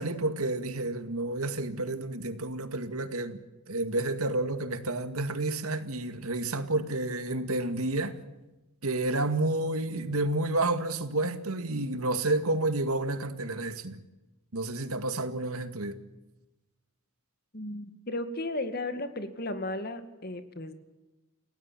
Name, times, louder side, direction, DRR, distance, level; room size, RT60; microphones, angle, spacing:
voice 1, 0.0-3.4 3.7-8.2 8.8-14.0 14.5-16.0, right 2 dB, 90° right, 2.1 m, -30 dB
voice 2, 17.5-20.7, left 2 dB, 45° left, 2.2 m, -35 dB
29.5 x 17.5 x 7.5 m
head